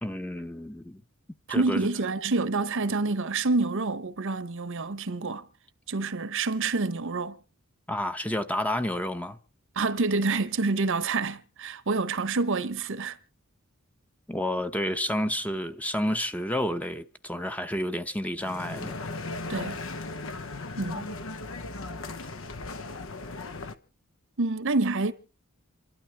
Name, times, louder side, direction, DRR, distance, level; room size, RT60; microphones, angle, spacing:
voice 1, 0.0-1.0 1.5-1.9 7.9-9.4 14.3-19.0, left 1 dB, 5° left, 0.8 m, -30 dB
voice 2, 1.5-5.4 5.9-7.4 9.8-13.2 19.5-19.8 20.8-21.1 24.4-25.1, right 3 dB, 65° right, 0.9 m, -27 dB
sound 1, 18.4-23.7, left 3 dB, 65° left, 1.0 m, -37 dB
28.0 x 12.0 x 3.4 m
head